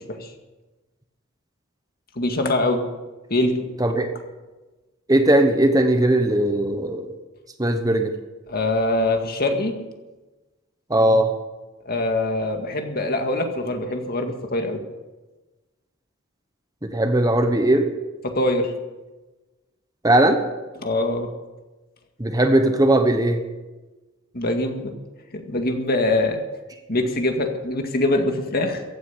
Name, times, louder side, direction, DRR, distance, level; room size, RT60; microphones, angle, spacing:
voice 1, 2.2-2.8 3.3-3.7 8.5-9.8 11.9-14.8 18.2-18.7 20.8-21.3 24.3-24.9 25.3-26.4 26.9-28.8, left 2 dB, 50° left, 4 dB, 2.0 m, -23 dB
voice 2, 3.8-4.1 5.1-7.1 7.6-8.1 10.9-11.3 16.8-17.9 20.0-20.4 22.2-23.4, right 1 dB, 20° right, 7 dB, 1.1 m, -18 dB
15.5 x 9.5 x 8.5 m, 1.2 s
head